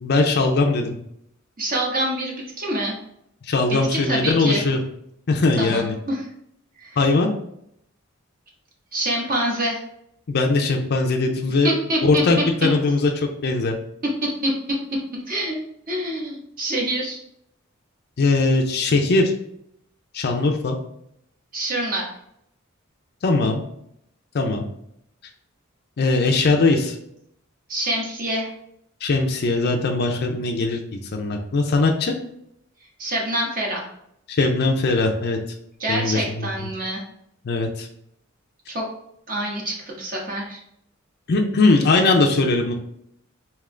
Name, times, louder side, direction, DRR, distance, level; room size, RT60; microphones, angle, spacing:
voice 1, 0.0-1.0 3.5-4.8 5.3-6.0 7.0-7.3 10.3-11.7 12.0-13.7 18.2-19.3 20.1-20.8 23.2-23.6 24.3-24.7 26.0-27.0 29.0-32.1 34.3-35.4 35.9-36.7 37.4-37.9 41.3-42.7, left 3 dB, 50° left, 2 dB, 0.5 m, -20 dB
voice 2, 1.6-2.9 3.7-4.6 5.6-6.2 6.8-7.0 8.9-9.8 11.6-12.2 14.2-14.5 15.3-15.6 15.9-17.2 21.5-22.1 27.7-28.5 33.0-33.8 35.8-37.0 38.7-38.8 39.3-40.6, right 1 dB, 40° right, -2 dB, 1.1 m, -26 dB
3.7 x 2.9 x 3.2 m, 0.74 s
head